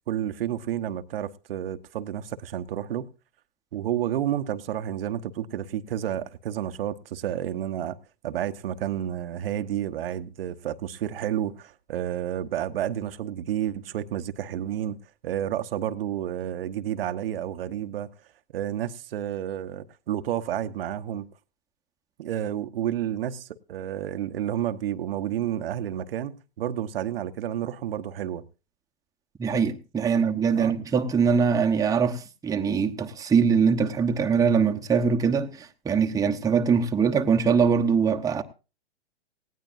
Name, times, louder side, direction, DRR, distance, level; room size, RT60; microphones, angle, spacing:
voice 1, 0.1-3.1 3.7-8.0 8.2-15.0 15.2-18.1 18.5-21.3 22.2-28.4 30.5-30.8, right 11 dB, 65° right, 1.0 m, -30 dB
voice 2, 29.4-38.4, right 6 dB, 10° right, 1.0 m, -22 dB
18.5 x 16.5 x 2.6 m
hypercardioid pair, 120°, 31 cm